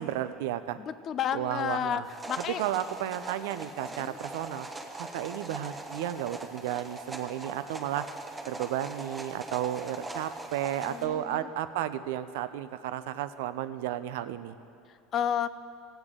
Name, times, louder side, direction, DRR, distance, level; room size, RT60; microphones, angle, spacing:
voice 1, 0.0-0.8 1.3-2.1 2.5-4.7 5.0-8.1 8.5-14.5, right 12 dB, 75° right, 12 dB, 0.5 m, -33 dB
voice 2, 0.8-2.6 4.0-4.2 10.9-11.5 15.1-15.5, left 9 dB, 30° left, 14 dB, 0.3 m, -31 dB
sound 1, 2.0-11.1, right 2 dB, 10° right, 0.7 m, -41 dB
17.5 x 8.0 x 3.7 m, 2.6 s
cardioid pair, 170°, 0 cm